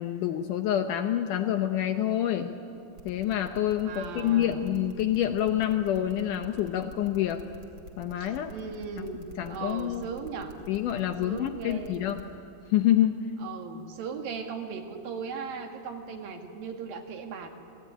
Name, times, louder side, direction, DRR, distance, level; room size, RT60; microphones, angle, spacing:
voice 1, 0.0-2.5 3.1-7.4 8.0-8.5 9.4-10.0 10.7-12.2 12.7-13.2, left 11 dB, 75° left, 7 dB, 2.0 m, -27 dB
sound 1, 3.0-12.3, equal, 40° right, 3.9 m, -47 dB
voice 2, 3.8-4.7 8.2-10.5 11.2-12.0 13.4-17.5, right 5 dB, 70° right, 4 dB, 3.5 m, -38 dB
29.0 x 19.0 x 9.9 m, 2.7 s
omnidirectional pair, 4.4 m